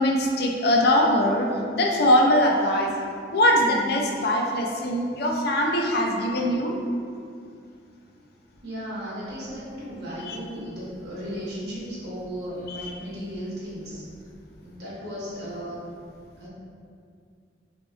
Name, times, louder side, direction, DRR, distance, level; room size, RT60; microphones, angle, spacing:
voice 1, 0.0-2.9 3.3-6.7 10.3-10.4 12.7-12.9, left 1 dB, 55° left, 1 dB, 0.5 m, -22 dB
voice 2, 8.6-14.0 14.6-15.9 16.4-16.5, equal, 60° right, -8 dB, 1.3 m, -35 dB
6.0 x 2.8 x 2.3 m, 2.3 s
head